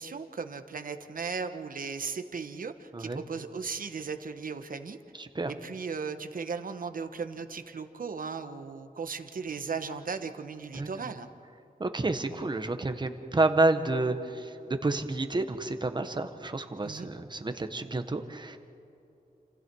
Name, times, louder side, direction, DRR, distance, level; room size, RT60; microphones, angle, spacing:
voice 1, 0.0-5.0 5.5-11.3 16.8-17.1, right 5 dB, 65° right, 8 dB, 1.3 m, -37 dB
voice 2, 5.2-5.5 10.7-10.9 11.8-18.6, right 2 dB, 30° right, 8 dB, 1.4 m, -29 dB
29.5 x 27.5 x 4.8 m, 2.8 s
wide cardioid pair, 140°, 16 cm